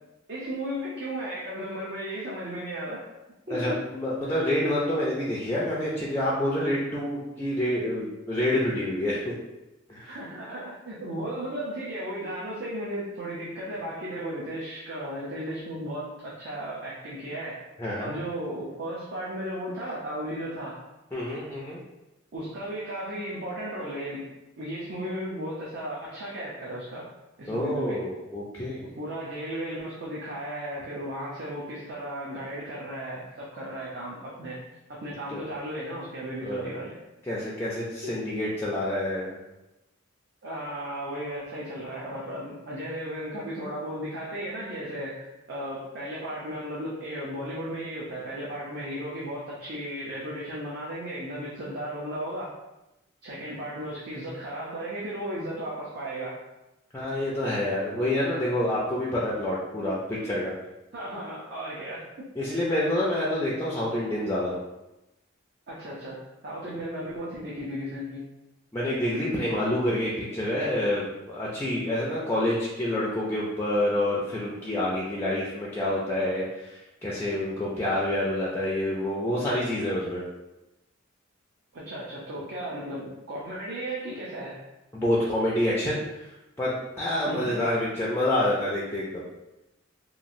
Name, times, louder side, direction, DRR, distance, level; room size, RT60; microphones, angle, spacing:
voice 1, 0.3-3.1 3.5-3.8 6.6-6.7 10.0-17.6 18.0-20.8 22.3-24.3 24.6-27.0 27.4-28.1 29.0-34.6 34.9-37.0 38.0-38.1 40.4-52.5 53.2-56.4 60.9-62.3 65.7-68.2 81.7-84.6 87.3-87.5, right 1 dB, 55° right, -6 dB, 0.5 m, -35 dB
voice 2, 3.5-9.3 9.9-10.2 17.8-18.2 21.1-21.8 27.5-28.9 35.3-35.4 36.4-36.8 37.3-39.4 56.9-60.5 62.4-64.6 68.7-80.2 84.9-86.0 86.6-89.2, left 1 dB, 10° left, -6 dB, 0.3 m, -27 dB
3.0 x 2.4 x 2.6 m, 0.97 s
head